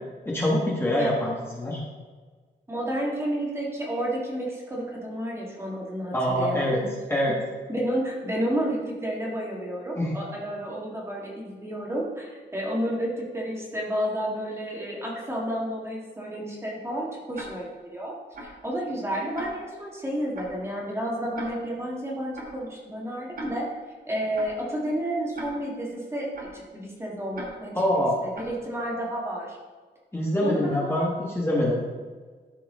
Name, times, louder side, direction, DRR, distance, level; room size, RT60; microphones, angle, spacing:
voice 1, 0.2-1.8 6.1-6.8 7.1-7.3 9.9-10.1 27.7-28.2 30.1-31.8, left 1 dB, 10° left, -5 dB, 1.4 m, -24 dB
voice 2, 2.7-6.9 7.7-18.1 18.4-23.7 24.1-27.7 28.2-29.6 30.4-31.1, right 1 dB, 15° right, -3 dB, 1.7 m, -31 dB
Tick-tock, 17.3-17.5 18.3-18.5 19.3-19.5 20.3-20.5 21.3-21.5 22.3-22.5 23.3-23.5 24.3-24.5 25.3-25.5 26.3-26.5 27.3-27.5 28.3-28.5, right 2 dB, 50° right, 1.6 m, -39 dB
13.0 x 4.7 x 3.6 m, 1.5 s
wide cardioid pair, 165°, 19 cm